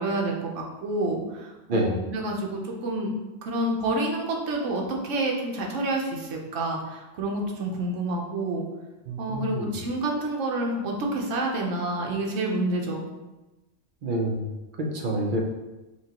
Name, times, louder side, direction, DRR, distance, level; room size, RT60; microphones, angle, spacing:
voice 1, 0.0-3.1 3.4-8.6 9.2-13.1, right 2 dB, 70° right, 0 dB, 1.1 m, -28 dB
voice 2, 9.1-9.8 14.0-14.4 14.9-15.4, right 1 dB, 50° right, 0 dB, 0.7 m, -27 dB
5.8 x 2.2 x 2.9 m, 1.1 s
omnidirectional pair, 1.3 m